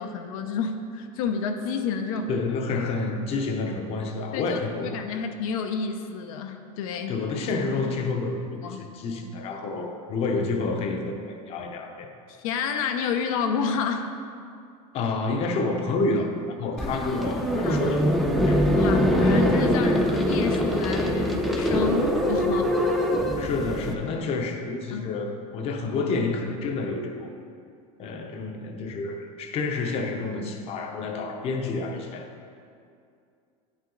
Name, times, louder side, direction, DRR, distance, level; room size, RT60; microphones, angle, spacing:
voice 1, 0.0-2.3 4.3-7.2 8.6-8.8 12.4-14.1 16.9-17.0 17.6-18.0 18.7-22.7 24.9-25.1, left 6 dB, 80° left, 5 dB, 0.7 m, -30 dB
voice 2, 2.3-5.2 7.1-12.1 14.9-16.3 16.6-18.0 18.4-18.7 23.4-27.3 28.0-32.2, left 3 dB, 35° left, 3 dB, 0.7 m, -29 dB
sound 1, 16.8-23.9, equal, ahead, 0.5 m, -23 dB
9.7 x 5.7 x 3.8 m, 2.4 s
supercardioid pair, 150°, 17 cm